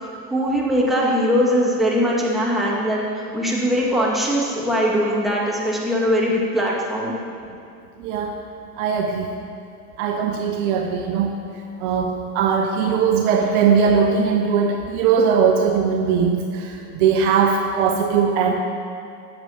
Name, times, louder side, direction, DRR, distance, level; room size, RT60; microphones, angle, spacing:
voice 1, 0.3-7.1, equal, ahead, -5 dB, 2.0 m, -21 dB
voice 2, 8.0-8.4 8.8-9.3 10.0-11.3 11.8-18.5, right 6 dB, 50° right, 3 dB, 0.8 m, -20 dB
17.5 x 6.9 x 2.9 m, 2.7 s
figure-of-eight pair, 80°, 47 cm